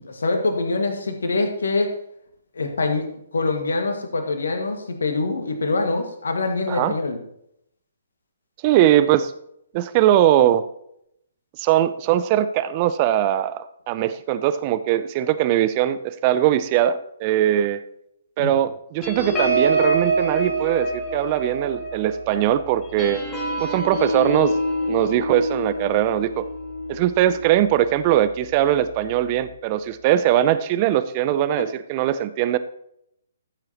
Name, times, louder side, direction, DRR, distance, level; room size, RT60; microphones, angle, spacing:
voice 1, 0.0-1.9 2.5-3.0 3.3-7.2 18.4-18.6, left 3 dB, 70° left, 5 dB, 1.8 m, -24 dB
voice 2, 8.6-9.3 9.7-10.6 11.6-17.8 18.4-23.2 23.6-24.6 24.9-26.4 26.9-32.6, right 12 dB, 35° right, 14 dB, 0.5 m, -20 dB
sound 1, 19.0-27.9 28.4-28.6 28.9-29.2, right 2 dB, 20° left, 3.6 m, -26 dB
14.0 x 7.5 x 3.0 m, 0.75 s
figure-of-eight pair, 130°, 0 cm